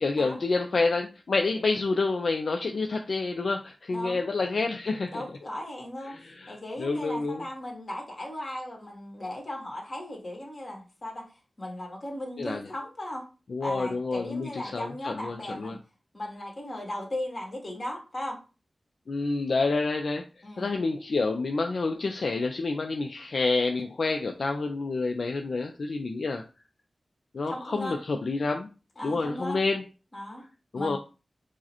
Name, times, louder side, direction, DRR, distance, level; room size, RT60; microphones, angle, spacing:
voice 1, 0.0-5.2 6.1-6.5 6.8-7.4 12.4-12.6 13.5-15.8 19.1-20.2 20.6-26.4 27.3-28.7 29.0-29.9 30.7-31.0, left 3 dB, 75° left, 4 dB, 0.4 m, -28 dB
voice 2, 3.9-4.3 5.1-11.3 11.6-13.3 13.6-15.8 16.1-18.4 20.4-20.8 27.5-28.0 29.0-29.6 30.1-30.5 30.7-31.0, left 1 dB, 50° left, 0 dB, 1.5 m, -37 dB
4.6 x 2.1 x 2.9 m, 0.32 s
cardioid pair, 45°, 0 cm